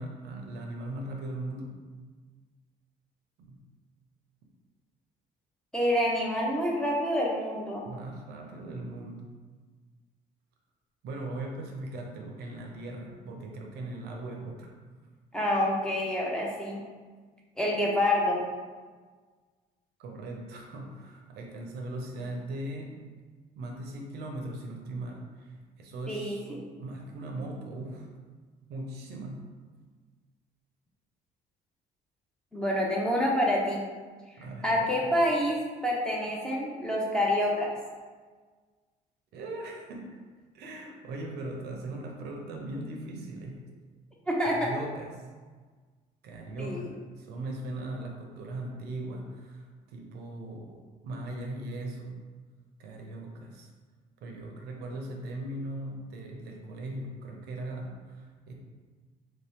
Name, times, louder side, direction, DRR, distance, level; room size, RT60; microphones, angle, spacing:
voice 1, 0.0-1.7 3.5-3.6 7.8-9.2 11.0-14.7 20.0-22.9 23.6-26.4 26.8-28.1 28.7-29.4 34.4-35.1 39.3-40.1 40.5-43.6 44.4-45.1 46.2-52.2 52.8-53.7 54.2-58.5, right 2 dB, 75° right, 2 dB, 0.6 m, -39 dB
voice 2, 5.7-7.8 15.3-16.8 17.6-18.4 26.1-26.6 32.5-33.8 34.6-37.7 44.3-44.7 46.6-46.8, left 1 dB, 5° left, -3 dB, 0.7 m, -27 dB
3.2 x 2.8 x 3.4 m, 1.5 s
cardioid pair, 110°, 17 cm